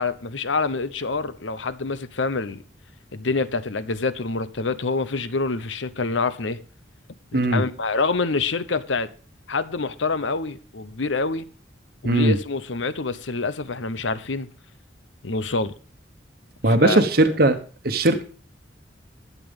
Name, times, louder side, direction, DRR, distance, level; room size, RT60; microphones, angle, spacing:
voice 1, 0.0-2.6 3.1-6.6 7.3-9.1 9.5-11.5 12.0-14.5 15.2-15.7 16.7-17.1, left 3 dB, 80° left, 1.0 m, -26 dB
voice 2, 12.0-12.4 16.6-17.6 17.8-18.2, right 1 dB, 50° right, 1.1 m, -18 dB
12.5 x 8.5 x 5.3 m
head